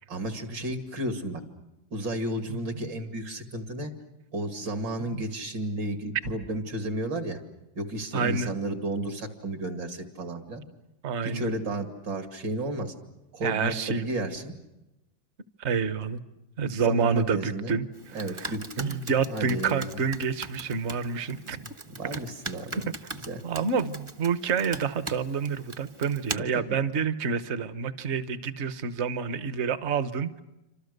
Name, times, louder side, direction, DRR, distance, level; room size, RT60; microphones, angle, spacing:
voice 1, 0.1-1.4 1.9-3.9 4.3-7.4 7.8-10.6 11.2-12.9 13.3-14.5 16.8-17.8 18.1-19.0 19.3-20.0 21.5-22.8 23.2-23.4 26.4-26.5, right 1 dB, 70° right, 5 dB, 3.1 m, -33 dB
voice 2, 2.5-2.9 5.1-5.2 8.1-8.5 11.0-11.5 13.4-14.1 15.6-16.2 16.6-17.9 18.4-18.5 18.8-21.6 23.4-30.4, right 5 dB, 45° right, 12 dB, 1.1 m, -28 dB
Computer keyboard, 17.9-26.4, right 2 dB, 25° right, 0.6 m, -41 dB
28.0 x 26.0 x 6.6 m, 0.96 s
omnidirectional pair, 2.1 m